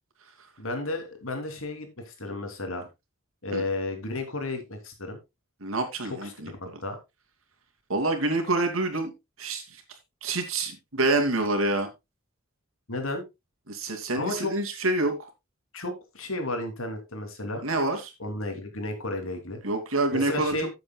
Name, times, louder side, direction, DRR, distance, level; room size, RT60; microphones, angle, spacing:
voice 1, 0.6-2.9 3.4-5.2 6.0-7.0 12.9-13.2 14.1-14.5 15.7-17.6 18.2-19.6 20.1-20.7, left 2 dB, 80° left, 3.0 m, -33 dB
voice 2, 5.6-6.5 7.9-9.1 9.4-9.6 10.2-11.9 13.7-15.3 17.6-18.1 19.6-20.7, right 2 dB, 80° right, 2.6 m, -27 dB
15.5 x 7.8 x 2.3 m
head